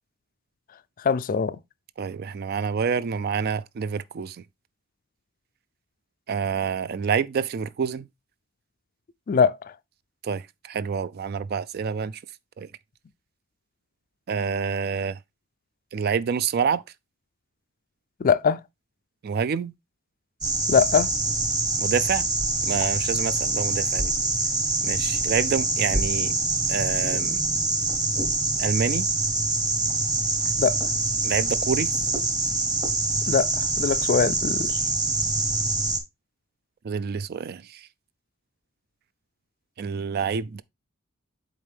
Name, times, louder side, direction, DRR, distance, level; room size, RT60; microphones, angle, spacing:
voice 1, 1.0-1.6 9.3-9.7 18.2-18.6 20.7-21.1 30.6-30.8 33.3-34.8, left 6 dB, 40° left, 0.4 m, -22 dB
voice 2, 2.0-4.4 6.3-8.0 10.2-12.2 12.6-12.7 14.3-15.2 15.9-16.8 19.2-19.7 21.8-22.3 22.6-24.1 24.8-26.3 26.7-27.4 28.6-29.1 31.2-31.9 36.8-37.6 39.8-40.6, right 6 dB, 50° right, 0.3 m, -27 dB
sound 1, 20.4-36.0, right 3 dB, 20° right, 1.0 m, -25 dB
7.5 x 4.0 x 3.4 m
head